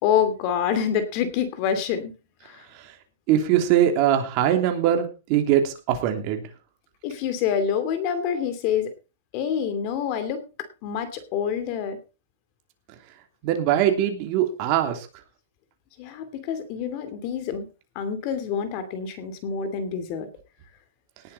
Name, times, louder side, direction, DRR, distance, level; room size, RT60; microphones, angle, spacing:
voice 1, 0.0-2.1 2.4-2.6 7.0-8.9 9.3-12.0 16.0-17.7 17.9-20.3, left 8 dB, 40° left, 11 dB, 2.6 m, -27 dB
voice 2, 3.3-6.4 13.4-15.1, right 10 dB, 35° right, 5 dB, 3.0 m, -22 dB
18.5 x 8.2 x 4.2 m, 0.31 s
supercardioid pair, 165°, 0 cm